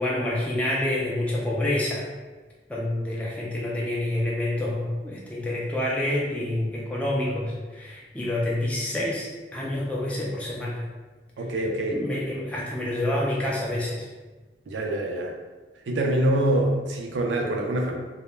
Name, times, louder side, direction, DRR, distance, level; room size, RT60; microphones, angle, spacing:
voice 1, 0.0-2.1 2.7-10.8 11.9-14.1, left 1 dB, 10° left, -5 dB, 0.3 m, -28 dB
voice 2, 11.4-12.0 14.7-15.3 15.9-18.0, right 1 dB, 90° right, 1 dB, 0.4 m, -25 dB
2.1 x 2.1 x 3.1 m, 1.3 s
head